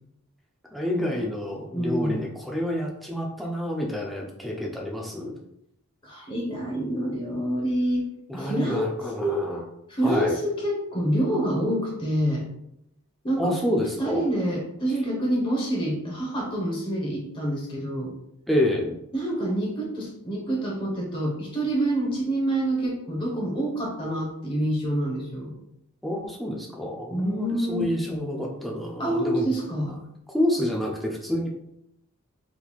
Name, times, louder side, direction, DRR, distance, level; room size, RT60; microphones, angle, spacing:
voice 1, 0.7-5.4 8.3-9.6 10.0-10.4 13.4-14.2 18.5-19.0 26.0-29.5 30.3-31.5, left 1 dB, ahead, -2 dB, 0.4 m, -28 dB
voice 2, 1.7-2.2 6.0-8.1 8.3-9.5 9.9-12.4 13.2-13.6 14.0-18.1 19.1-25.5 27.1-28.2 29.0-30.0, right 1 dB, 25° left, -2 dB, 0.9 m, -27 dB
3.7 x 3.0 x 2.3 m, 0.78 s
head